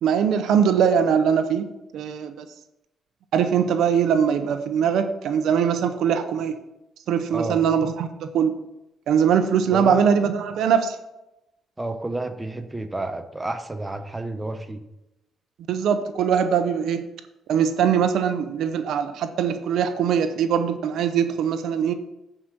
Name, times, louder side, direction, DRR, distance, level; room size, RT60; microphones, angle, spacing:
voice 1, 0.0-2.4 3.3-6.6 7.1-8.5 9.1-11.0 15.7-17.0 17.5-21.9, right 7 dB, 80° right, 9 dB, 0.7 m, -21 dB
voice 2, 9.7-10.0 11.8-14.8, right 2 dB, 15° right, 7 dB, 0.8 m, -30 dB
8.7 x 5.0 x 6.0 m, 0.91 s
cardioid pair, 90°, 0 cm